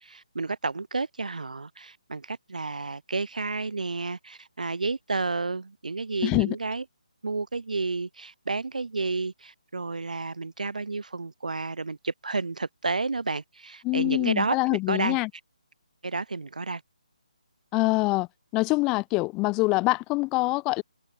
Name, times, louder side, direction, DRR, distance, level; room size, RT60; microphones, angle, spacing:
voice 1, 0.0-6.8 7.2-15.2 16.0-16.8, right 3 dB, 85° right, 6.6 m, -31 dB
voice 2, 6.2-6.6 13.8-15.3 17.7-20.8, left 24 dB, 10° left, 0.4 m, -25 dB
hypercardioid pair, 170°, 4 cm